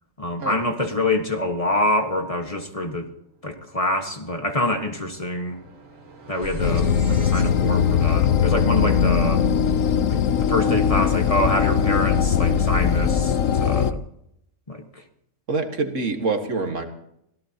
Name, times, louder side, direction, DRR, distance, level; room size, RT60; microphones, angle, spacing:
voice 1, 0.2-3.1 3.4-5.6 6.3-9.5 10.1-14.0 14.7-15.0, left 1 dB, 25° left, 4 dB, 1.6 m, -26 dB
sound 1, 3.3-3.4 3.7-9.9, left 1 dB, 90° right, 2.4 m, -41 dB
sound 2, 6.6-13.9, left 7 dB, 80° left, 1.1 m, -20 dB
voice 2, 15.5-16.8, right 3 dB, 70° right, 5 dB, 2.1 m, -25 dB
25.5 x 17.5 x 2.9 m, 0.75 s
omnidirectional pair, 1.4 m